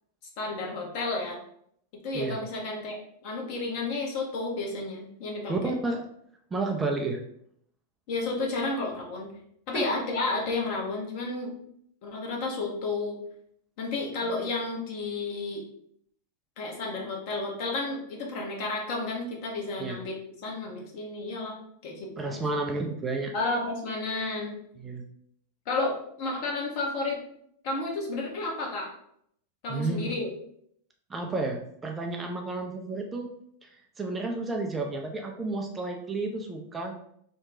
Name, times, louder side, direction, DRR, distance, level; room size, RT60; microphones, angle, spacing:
voice 1, 0.4-1.4 2.0-3.0 3.2-5.5 8.1-9.3 9.7-11.6 12.0-13.2 13.8-15.6 16.6-20.1 20.4-21.5 21.8-22.4 23.3-24.5 25.7-27.2 27.6-28.9 29.6-30.3, left 3 dB, 45° left, -1 dB, 0.9 m, -31 dB
voice 2, 5.5-6.1 6.5-7.2 9.7-9.8 19.8-20.0 22.2-23.3 24.8-25.0 29.7-30.2 31.1-33.3 33.6-33.7 34.0-37.0, right 3 dB, 15° right, 2 dB, 0.4 m, -31 dB
2.9 x 2.2 x 3.6 m, 0.69 s
figure-of-eight pair, 90°, 0 cm